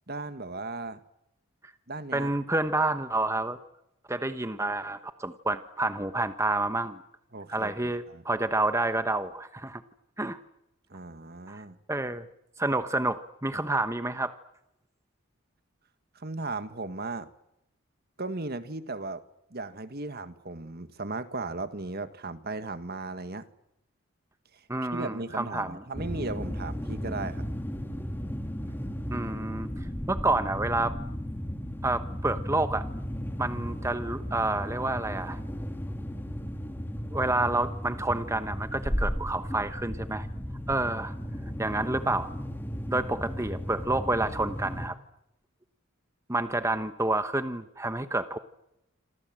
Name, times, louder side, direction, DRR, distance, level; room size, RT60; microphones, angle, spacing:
voice 1, 0.1-1.0 1.9-2.3 7.3-7.7 8.1-8.2 10.9-11.8 16.1-17.3 18.2-19.2 19.5-23.4 24.9-27.4, right 3 dB, 45° right, 11 dB, 1.7 m, -36 dB
voice 2, 2.1-3.6 4.1-7.0 7.5-9.8 10.2-10.4 11.5-11.6 11.9-12.3 12.6-14.3 24.7-25.8 29.1-29.7 30.1-30.9 31.8-32.9 33.4-35.4 37.1-40.3 40.7-41.1 41.6-42.3 42.9-45.0 46.3-48.4, right 2 dB, 15° right, 10 dB, 1.1 m, -29 dB
sound 1, 25.9-44.9, equal, 10° left, 2.5 m, -35 dB
27.5 x 27.0 x 7.6 m, 0.86 s
head